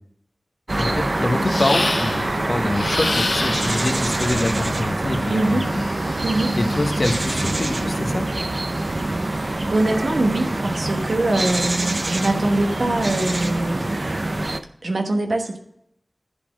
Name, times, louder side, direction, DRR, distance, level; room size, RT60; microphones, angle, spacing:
sound 1, 0.7-14.6, right 2 dB, 55° right, 0.6 m, -25 dB
voice 1, 0.8-5.8 6.6-8.3, left 2 dB, 55° left, 5 dB, 1.2 m, -25 dB
sound 2, 1.5-2.3 2.7-4.0 5.7-7.6, left 3 dB, 85° left, 0.7 m, -28 dB
voice 2, 5.3-5.7 6.2-6.6 9.7-14.0 14.8-15.6, right 2 dB, 85° right, 4 dB, 1.2 m, -23 dB
11.5 x 4.3 x 6.1 m, 0.75 s
wide cardioid pair, 45°, 0 cm